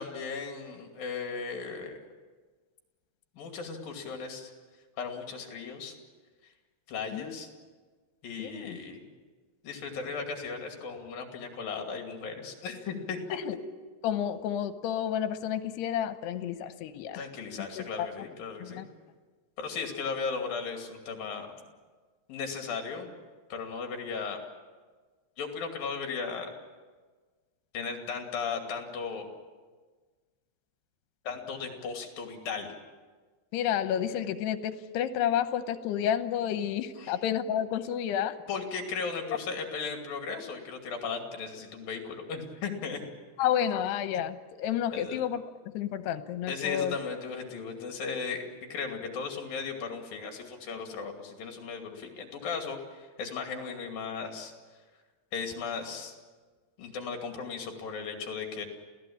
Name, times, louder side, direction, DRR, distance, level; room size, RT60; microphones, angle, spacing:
voice 1, 0.0-2.0 3.4-4.5 5.0-5.9 6.9-7.5 8.2-9.0 9.6-13.4 17.1-18.9 19.6-21.6 22.3-23.1 23.5-24.4 25.4-26.5 27.7-29.3 31.2-32.7 37.0-37.1 38.5-43.0 44.9-45.2 46.5-54.5 55.3-56.1 56.8-58.7, left 5 dB, 60° left, 3 dB, 4.1 m, -36 dB
voice 2, 8.4-8.8 13.3-13.6 14.0-17.3 17.6-18.2 18.6-18.9 33.5-38.4 39.3-39.4 43.4-45.4 45.7-47.0, left 10 dB, 85° left, 10 dB, 3.1 m, -30 dB
28.0 x 17.0 x 8.7 m, 1.4 s
omnidirectional pair, 4.8 m